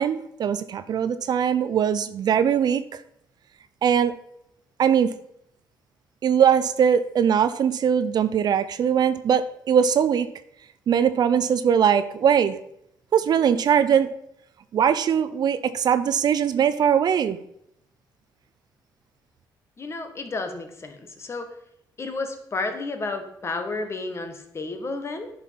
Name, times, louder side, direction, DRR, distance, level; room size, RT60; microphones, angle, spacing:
voice 1, 0.0-3.0 3.8-4.1 4.8-5.1 6.2-10.3 10.9-12.6 13.1-14.1 14.7-17.4, right 8 dB, 55° right, 13 dB, 0.7 m, -21 dB
voice 2, 19.8-21.5 22.0-25.3, left 3 dB, 35° left, 6 dB, 1.8 m, -31 dB
10.0 x 5.7 x 5.9 m, 0.75 s
cardioid pair, 100°, 8 cm